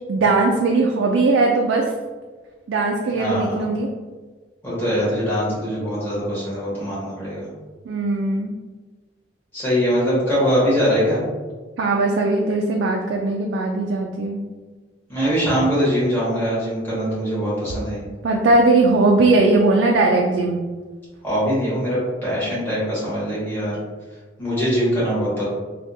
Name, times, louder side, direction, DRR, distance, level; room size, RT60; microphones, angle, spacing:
voice 1, 0.1-1.9 2.7-3.9 7.9-8.5 11.8-14.4 18.2-20.6, right 3 dB, 85° right, 0 dB, 0.3 m, -19 dB
voice 2, 3.1-3.5 4.6-7.5 9.5-11.2 15.1-18.0 21.2-23.7 24.4-25.4, equal, 10° left, -10 dB, 1.4 m, -22 dB
3.5 x 2.3 x 2.6 m, 1.3 s
head